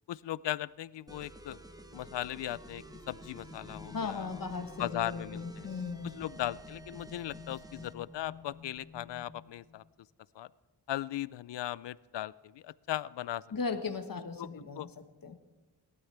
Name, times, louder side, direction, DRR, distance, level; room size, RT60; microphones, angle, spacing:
voice 1, 0.1-1.6 1.9-4.3 4.8-5.7 6.1-9.8 10.3-10.5 10.9-13.4 14.4-14.5 14.8-14.9, left 13 dB, 85° left, 20 dB, 0.5 m, -38 dB
sound 1, 1.1-8.0, right 1 dB, 10° right, 0.9 m, -51 dB
sound 2, 2.2-9.8, left 5 dB, 35° left, 1.5 m, -51 dB
voice 2, 3.9-6.1 13.5-15.3, left 4 dB, 55° left, 7 dB, 1.5 m, -37 dB
18.5 x 12.5 x 3.4 m, 1.3 s
wide cardioid pair, 85°, 42 cm